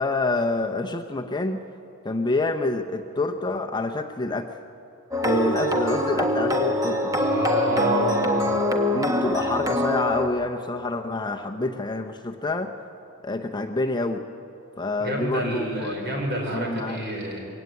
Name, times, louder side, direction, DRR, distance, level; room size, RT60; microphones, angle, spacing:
voice 1, 0.0-1.6 2.0-4.5 5.2-7.1 8.9-12.7 13.2-14.2 14.8-16.2 16.5-17.0, left 2 dB, 20° left, 4 dB, 0.7 m, -27 dB
sound 1, 5.1-10.3, equal, 15° right, 1.5 m, -24 dB
voice 2, 7.2-8.5 15.0-17.4, right 1 dB, 50° right, 1 dB, 5.1 m, -28 dB
22.0 x 17.0 x 9.5 m, 2.8 s
head